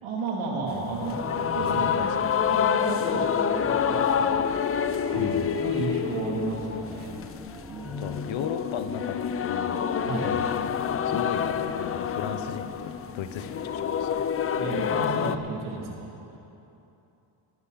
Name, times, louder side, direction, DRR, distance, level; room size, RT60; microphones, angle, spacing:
voice 1, 0.0-1.2 1.5-4.4 5.1-7.4 7.7-8.4 10.0-10.3 14.6-16.1, right 3 dB, 75° right, -2 dB, 2.9 m, -33 dB
sound 1, 0.7-15.4, left 8 dB, 30° left, 0.4 m, -27 dB
sound 2, 1.0-15.0, right 1 dB, 5° right, 0.7 m, -46 dB
voice 2, 1.3-2.1 2.6-2.7 5.1-5.5 8.0-9.9 10.2-10.5 11.0-14.3, left 8 dB, 70° left, 10 dB, 0.9 m, -36 dB
19.0 x 11.5 x 4.1 m, 2.9 s
cardioid pair, 125°, 48 cm